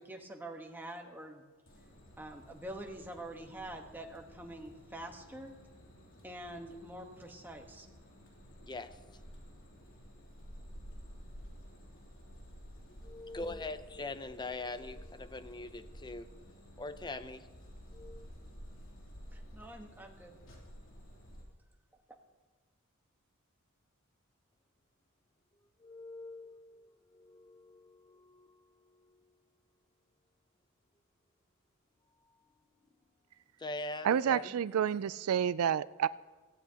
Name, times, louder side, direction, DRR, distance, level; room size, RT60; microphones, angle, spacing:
voice 1, 0.0-1.4 2.2-5.5 6.2-7.9 19.3-20.4 22.1-22.2, right 1 dB, 10° right, 1.3 m, -46 dB
sound 1, 1.7-21.4, equal, 65° left, 3.2 m, -52 dB
voice 2, 8.6-9.0 13.0-16.3 16.8-17.5 17.9-18.3 25.8-28.6 29.1-29.2 33.6-34.5, left 2 dB, 20° left, 0.6 m, -43 dB
voice 3, 34.0-36.1, right 8 dB, 70° right, 0.3 m, -29 dB
18.0 x 15.0 x 2.9 m
head